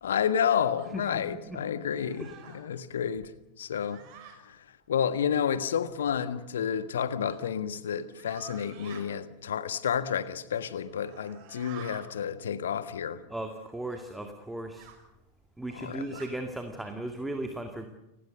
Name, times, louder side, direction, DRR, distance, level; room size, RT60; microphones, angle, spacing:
voice 1, 0.0-3.3 3.6-4.0 4.4-13.2 15.7-16.2, left 8 dB, 65° left, 1.4 m, -30 dB
sound 1, 0.7-0.9 1.8-2.6 3.7-4.4 6.1-6.3 7.2-7.4 8.1-9.0 10.8-12.1 13.9-14.0 14.8-15.0 15.8-16.3, right 9 dB, 45° right, 5.9 m, -50 dB
voice 2, 13.3-14.9 15.6-17.9, right 1 dB, 5° right, 2.2 m, -36 dB
30.0 x 19.5 x 6.6 m
figure-of-eight pair, 90°, 0 cm